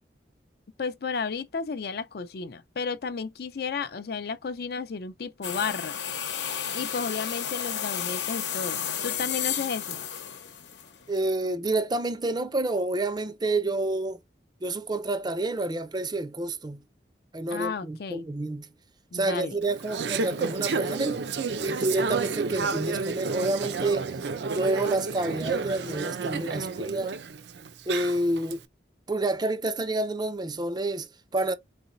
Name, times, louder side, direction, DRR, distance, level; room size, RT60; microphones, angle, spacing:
voice 1, 0.8-6.0 6.7-10.1 17.5-18.3 19.1-19.6, left 5 dB, 60° left, 0.5 m, -33 dB
sound 1, 5.4-11.2, left 9 dB, 85° left, 0.9 m, -32 dB
voice 2, 11.1-14.2 14.6-16.8 17.3-18.7 19.1-21.2 21.6-24.1 24.5-27.1 27.9-28.6 29.1-31.5, right 2 dB, 25° right, 0.5 m, -28 dB
Conversation / Chatter, 19.6-28.5, right 4 dB, 75° right, 0.5 m, -31 dB
4.1 x 3.8 x 2.6 m
head